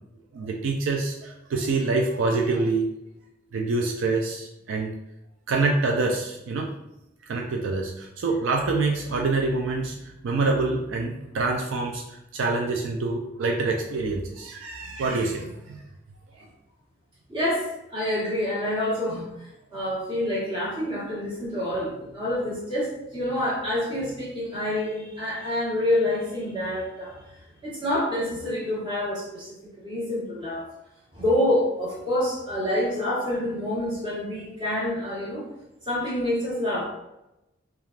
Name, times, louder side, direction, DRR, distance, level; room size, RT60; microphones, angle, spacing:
voice 1, 0.3-2.9 3.5-4.9 5.5-6.7 7.3-12.0 12.3-15.8, right 3 dB, 75° right, 1 dB, 0.3 m, -26 dB
voice 2, 17.3-30.7 31.1-35.4 35.9-36.8, left 1 dB, 25° right, -7 dB, 1.1 m, -27 dB
3.2 x 2.3 x 2.4 m, 0.89 s
head